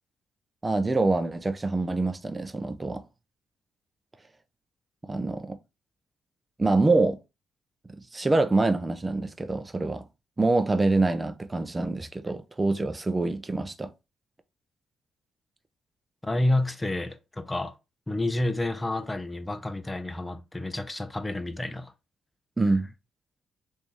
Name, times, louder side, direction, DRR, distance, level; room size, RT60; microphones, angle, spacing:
voice 1, 0.6-3.0 5.1-5.6 6.6-7.2 7.9-10.1 10.4-13.9 22.6-22.9, right 2 dB, 25° right, 0.6 m, -25 dB
voice 2, 16.2-17.7 18.1-21.9, left 1 dB, 15° left, 0.6 m, -29 dB
3.0 x 2.7 x 3.8 m
supercardioid pair, 60°, 0 cm